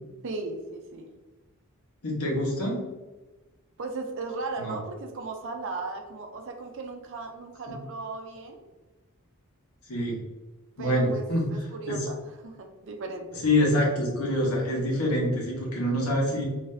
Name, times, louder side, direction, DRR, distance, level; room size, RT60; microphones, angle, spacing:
voice 1, 0.2-1.1 3.8-8.6 10.8-11.2 11.5-12.2 12.4-13.5, right 3 dB, 60° right, 4 dB, 0.5 m, -36 dB
voice 2, 2.0-2.8 4.6-4.8 9.9-10.2 10.8-11.4 11.9-12.0 13.4-16.4, left 1 dB, 75° left, -3 dB, 1.0 m, -25 dB
4.0 x 2.6 x 2.6 m, 1.2 s
head